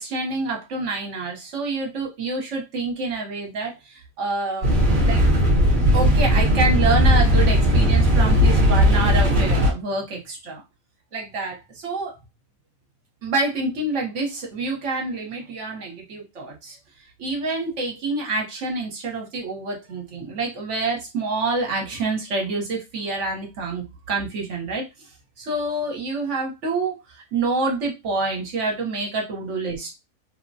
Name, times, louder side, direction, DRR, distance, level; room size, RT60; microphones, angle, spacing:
voice 1, 0.0-5.2 5.9-10.6 11.1-12.1 13.2-16.8 17.2-25.1 25.4-30.0, right 3 dB, 65° right, 1 dB, 1.2 m, -27 dB
sound 1, 4.6-9.7, equal, 45° right, 0.8 m, -17 dB
3.1 x 2.1 x 2.6 m, 0.23 s
omnidirectional pair, 1.4 m